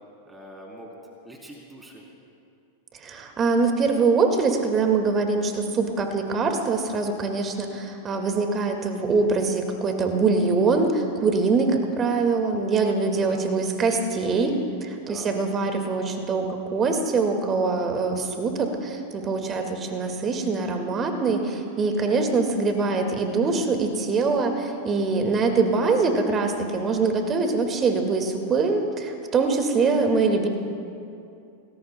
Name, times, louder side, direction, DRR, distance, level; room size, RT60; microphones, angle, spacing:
voice 1, 0.3-1.0 1.2-2.0 13.1-13.5 15.1-15.3 19.4-19.8, right 1 dB, 5° right, -2 dB, 3.6 m, -44 dB
voice 2, 3.0-14.5 14.8-30.5, right 4 dB, 25° right, 4 dB, 2.0 m, -23 dB
28.0 x 20.0 x 2.3 m, 2.6 s
figure-of-eight pair, 90°, 0 cm